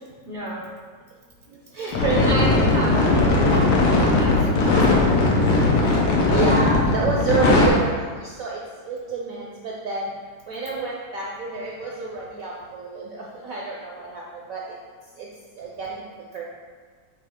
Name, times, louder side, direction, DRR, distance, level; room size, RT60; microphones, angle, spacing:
voice 1, 0.2-0.7 2.1-5.4 5.7-6.5, right 1 dB, 45° left, -6 dB, 0.6 m, -32 dB
voice 2, 1.7-2.4 5.9-6.0 6.3-7.9 8.2-8.6 8.9-10.1 10.5-14.6 15.2-15.3 15.6-16.0 16.3-16.4, right 4 dB, 65° right, -3 dB, 0.8 m, -28 dB
sound 1, 1.9-7.7, left 2 dB, 85° left, 1.7 m, -18 dB
8.9 x 3.1 x 3.6 m, 1.5 s
omnidirectional pair, 2.2 m